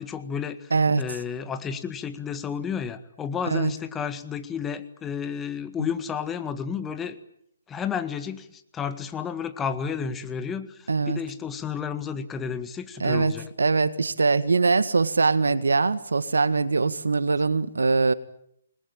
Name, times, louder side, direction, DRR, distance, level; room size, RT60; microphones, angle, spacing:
voice 1, 0.0-0.7 1.0-7.2 7.7-13.5, left 7 dB, 15° left, 10 dB, 1.7 m, -32 dB
voice 2, 0.7-1.0 3.5-3.7 10.9-11.2 13.0-13.3 13.6-18.1, right 4 dB, 75° right, 14 dB, 1.7 m, -22 dB
28.0 x 21.0 x 8.9 m, 0.73 s
figure-of-eight pair, 140°, 0 cm